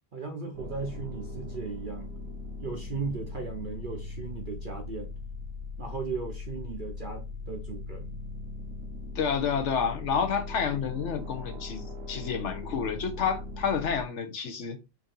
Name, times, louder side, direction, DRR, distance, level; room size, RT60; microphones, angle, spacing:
voice 1, 0.1-2.1 2.6-5.1 5.8-8.2, right 5 dB, 45° right, 0.7 m, -37 dB
sound 1, 0.5-14.0, left 3 dB, 75° right, 1.2 m, -39 dB
voice 2, 9.1-14.8, left 6 dB, 60° left, 1.1 m, -29 dB
4.6 x 2.8 x 3.7 m
omnidirectional pair, 1.4 m